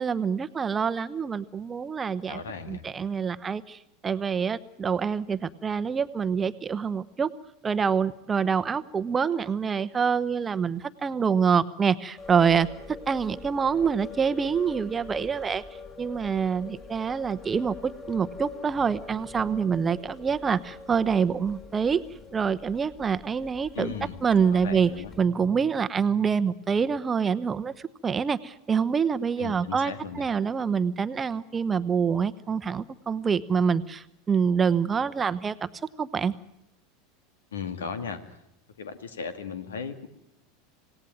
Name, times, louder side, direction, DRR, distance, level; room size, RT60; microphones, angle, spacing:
voice 1, 0.0-2.4 2.7-7.3 7.6-12.7 13.1-15.6 16.0-22.0 22.3-23.9 24.2-24.9 25.2-27.7 28.0-35.7 36.0-36.3, right 6 dB, 25° right, 13 dB, 1.0 m, -26 dB
voice 2, 2.3-2.8 23.7-24.2 24.5-25.1 29.4-30.3 37.5-38.2 38.8-40.1, left 6 dB, 75° left, 10 dB, 2.1 m, -36 dB
sound 1, 12.2-25.2, left 4 dB, 30° left, 6.4 m, -44 dB
27.0 x 17.5 x 9.2 m, 0.83 s
hypercardioid pair, 85°, 0 cm